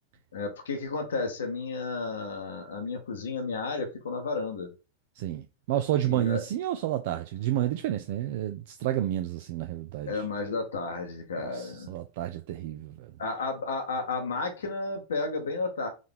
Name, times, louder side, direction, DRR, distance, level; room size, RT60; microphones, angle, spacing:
voice 1, 0.3-4.7 6.0-6.4 10.1-11.9 13.2-15.9, left 3 dB, 65° left, 0.8 m, -32 dB
voice 2, 5.2-10.2 11.4-13.1, right 12 dB, 50° right, 0.3 m, -30 dB
3.7 x 3.2 x 3.7 m
figure-of-eight pair, 90°, 0 cm